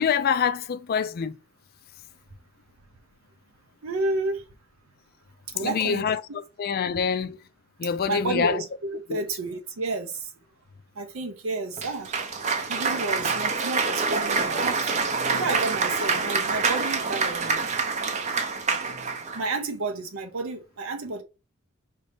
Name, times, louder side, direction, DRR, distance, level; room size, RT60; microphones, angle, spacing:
voice 1, 0.0-1.4 5.6-7.4 7.8-8.6 9.1-9.2, left 6 dB, 45° left, 0.4 m, -26 dB
voice 2, 3.8-4.4 5.5-6.1 8.1-10.3 11.0-12.1 12.7-15.0 15.3-17.7 19.3-21.2, right 3 dB, 75° right, 0.7 m, -31 dB
Cheering / Applause, 11.8-19.5, right 4 dB, 35° right, 0.6 m, -26 dB
5.2 x 2.7 x 3.3 m
head